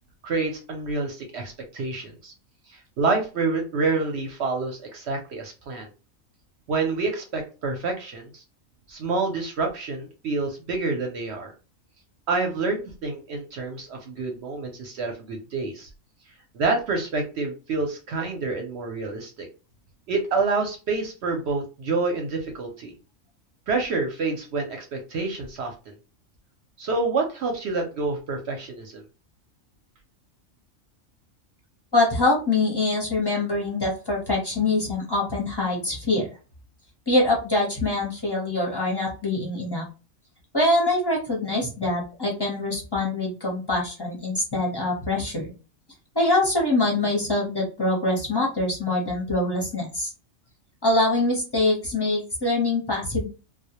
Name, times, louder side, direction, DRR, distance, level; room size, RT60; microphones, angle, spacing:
voice 1, 0.2-2.3 2.7-5.9 6.7-8.4 8.9-11.5 12.3-15.9 16.5-19.5 20.1-22.9 23.7-25.9 26.8-29.0, right 3 dB, 65° right, 3 dB, 0.7 m, -28 dB
voice 2, 31.9-36.3 37.1-39.9 40.5-45.5 46.1-50.1 50.8-53.3, left 2 dB, 25° left, -2 dB, 0.6 m, -24 dB
2.2 x 2.1 x 2.8 m, 0.32 s
omnidirectional pair, 1.4 m